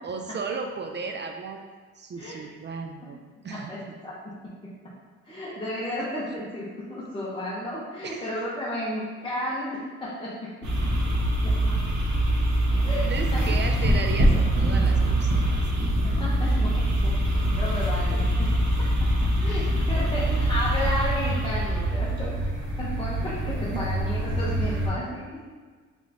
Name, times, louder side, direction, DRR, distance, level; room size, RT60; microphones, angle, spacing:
voice 1, 0.0-1.6 2.0-3.2 3.4-4.0 8.0-8.3 12.3-12.5 13.1-15.6, right 4 dB, 35° right, 4 dB, 0.4 m, -35 dB
voice 2, 3.5-4.2 4.6-4.8 5.2-10.9 11.4-11.8 12.8-13.5 13.7-13.9 16.2-18.5 19.0-22.4 22.8-25.4, equal, 15° left, -9 dB, 0.9 m, -33 dB
sound 1, 10.6-24.9, right 1 dB, 65° right, 1.1 m, -24 dB
3.4 x 3.1 x 4.0 m, 1.5 s
cardioid pair, 90°, 30 cm